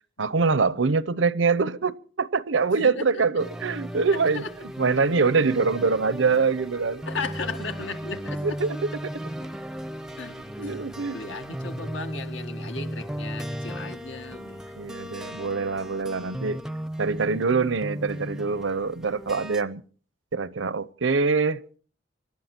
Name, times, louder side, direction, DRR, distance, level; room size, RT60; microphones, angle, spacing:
voice 1, 0.2-4.4 4.8-7.0 8.4-8.8 10.6-11.2 14.8-16.6 17.0-19.8 20.3-21.8, right 4 dB, 75° right, 0.7 m, -24 dB
voice 2, 2.7-3.2 4.1-4.5 7.0-8.6 10.2-10.8 11.1-14.8, left 4 dB, 75° left, 1.9 m, -36 dB
sound 1, 3.4-19.6, equal, 5° right, 0.7 m, -36 dB
25.5 x 12.0 x 4.4 m
head